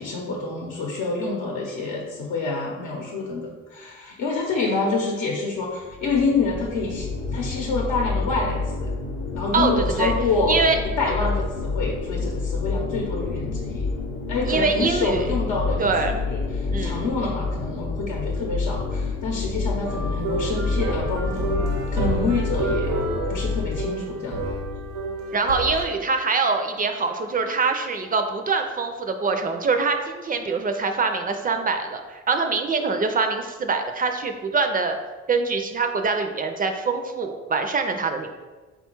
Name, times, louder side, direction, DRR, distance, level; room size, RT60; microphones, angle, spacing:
voice 1, 0.0-7.1 7.3-8.9 9.3-10.6 10.8-13.9 14.3-21.6 21.9-23.0 23.3-24.4, left 3 dB, 80° left, -2 dB, 0.7 m, -27 dB
sound 1, 5.8-23.8, left 4 dB, 45° left, 0.7 m, -28 dB
voice 2, 9.5-10.1 10.5-10.8 14.5-15.2 15.8-16.2 16.7-17.1 25.3-35.0 35.3-38.3, right 4 dB, 30° right, 6 dB, 0.4 m, -24 dB
sound 2, 19.8-25.9, right 2 dB, 85° right, 0.8 m, -29 dB
3.9 x 2.3 x 4.4 m, 1.3 s
cardioid pair, 90°, 30 cm